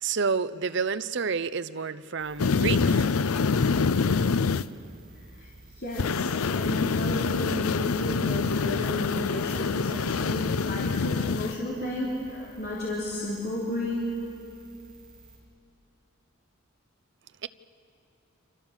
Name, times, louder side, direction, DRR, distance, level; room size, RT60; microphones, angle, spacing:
voice 1, 0.0-3.1 17.4-17.5, right 5 dB, 55° right, 0.6 m, -29 dB
sound 1, 2.2-15.4, right 3 dB, 5° right, 7.7 m, -53 dB
sound 2, 2.4-4.6 6.0-11.5, left 5 dB, 85° left, 0.6 m, -26 dB
voice 2, 5.7-14.1, left 1 dB, 45° left, 3.4 m, -33 dB
29.0 x 25.5 x 7.3 m
head